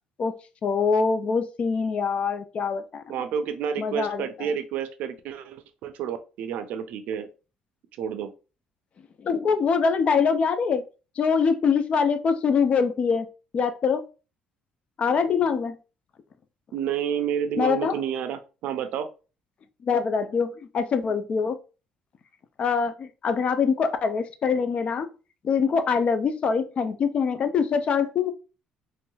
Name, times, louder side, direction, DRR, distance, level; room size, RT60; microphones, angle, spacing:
voice 1, 0.6-3.0 3.8-4.5 9.2-10.8 11.2-13.3 13.5-14.0 15.0-15.8 17.6-17.9 19.8-21.6 22.6-25.1 25.4-28.3, left 5 dB, 50° left, 10 dB, 0.4 m, -24 dB
voice 2, 3.1-7.3 8.0-8.3 15.1-15.6 16.7-19.1, right 8 dB, 75° right, 10 dB, 0.4 m, -30 dB
3.1 x 3.0 x 2.3 m, 0.33 s
supercardioid pair, 85°, 3 cm